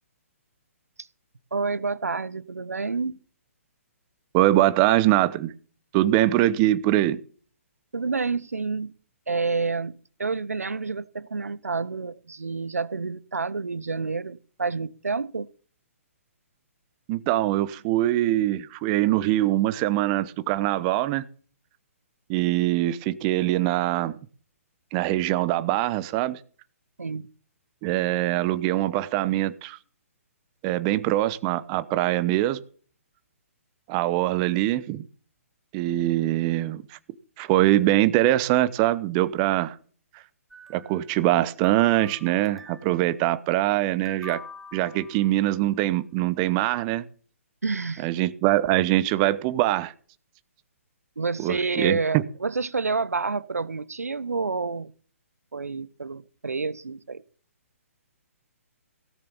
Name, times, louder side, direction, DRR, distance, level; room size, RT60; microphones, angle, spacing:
voice 1, 1.5-3.2 7.9-8.9 9.3-9.9 10.2-15.5 27.0-27.3 47.6-48.1 51.2-54.9 55.5-57.2, right 4 dB, 85° right, 0.8 m, -29 dB
voice 2, 4.3-5.5 5.9-7.2 17.1-21.3 22.3-24.2 24.9-26.4 27.8-29.8 30.6-32.6 33.9-35.0 35.7-37.0 37.4-39.8 40.1-40.2 40.7-44.4 44.7-47.0 48.0-49.9 51.4-52.2, right 15 dB, 30° right, 0.9 m, -23 dB
sound 1, 40.5-41.4 41.6-43.0 44.1-45.6, left 3 dB, ahead, 1.5 m, -46 dB
17.0 x 6.9 x 7.1 m
hypercardioid pair, 135°, 8 cm